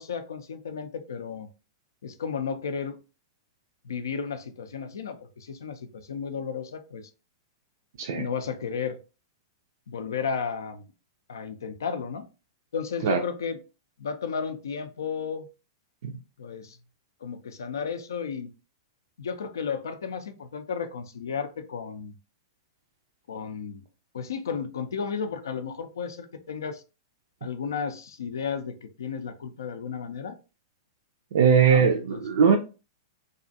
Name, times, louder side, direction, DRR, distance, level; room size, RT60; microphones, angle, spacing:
voice 1, 0.0-1.5 2.0-3.0 3.8-7.0 8.1-9.0 9.9-10.9 11.3-12.2 12.7-13.6 14.0-15.5 16.4-16.8 17.2-18.5 19.2-22.1 23.3-23.8 24.1-26.8 27.4-30.4 31.7-32.2, left 6 dB, 70° left, 0.4 m, -33 dB
voice 2, 31.3-32.6, right 7 dB, 60° right, 0.4 m, -20 dB
2.6 x 2.3 x 2.5 m
figure-of-eight pair, 105°, 2 cm